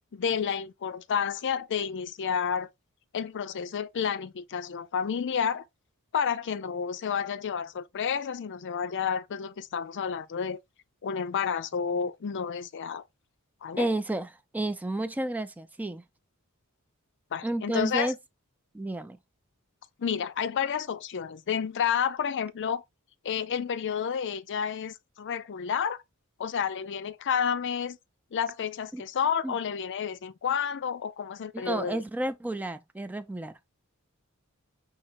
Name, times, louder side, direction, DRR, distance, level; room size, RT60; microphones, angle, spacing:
voice 1, 0.1-2.7 3.1-5.6 6.1-10.6 11.0-13.0 13.6-13.9 17.3-18.1 20.0-22.8 23.2-26.0 26.4-28.0 28.3-32.0, left 7 dB, 55° left, 0.5 m, -30 dB
voice 2, 13.8-16.0 17.4-18.2 18.7-19.2 28.9-29.0 29.4-29.6 31.5-33.6, right 2 dB, 5° right, 0.3 m, -31 dB
5.6 x 3.6 x 2.5 m
head